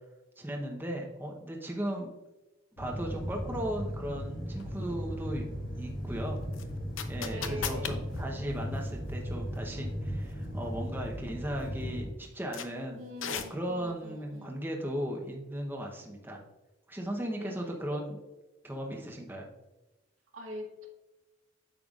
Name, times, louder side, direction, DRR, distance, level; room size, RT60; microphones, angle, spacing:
voice 1, 0.4-2.1 2.8-5.5 5.8-6.4 7.1-13.0 13.3-16.4 16.9-18.2 18.6-19.5, equal, 10° right, 0 dB, 0.8 m, -36 dB
sound 1, 2.8-12.1, equal, 45° left, 1.6 m, -37 dB
sound 2, 4.6-4.7 6.5-9.3 9.6-9.7 10.3-10.6 11.0-11.1 11.6-11.7 12.5-12.7 13.2-13.9, left 6 dB, 80° left, 0.7 m, -37 dB
voice 2, 7.3-8.0 13.0-14.5 17.3-17.7 20.3-20.9, equal, 85° right, -1 dB, 1.9 m, -43 dB
8.9 x 6.8 x 2.4 m, 1.1 s
head